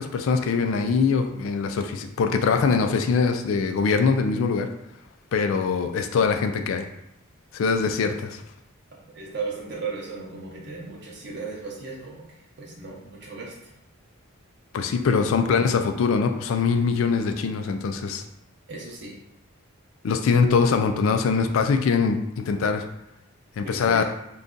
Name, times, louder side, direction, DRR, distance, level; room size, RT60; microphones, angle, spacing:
voice 1, 0.0-4.7 5.3-6.9 7.5-8.4 14.7-18.2 20.0-22.8 23.6-24.0, left 5 dB, 70° left, 7 dB, 0.3 m, -23 dB
voice 2, 9.1-13.7 18.7-19.2 23.6-24.0, right 4 dB, 50° right, -3 dB, 0.6 m, -36 dB
2.6 x 2.3 x 3.7 m, 0.83 s
head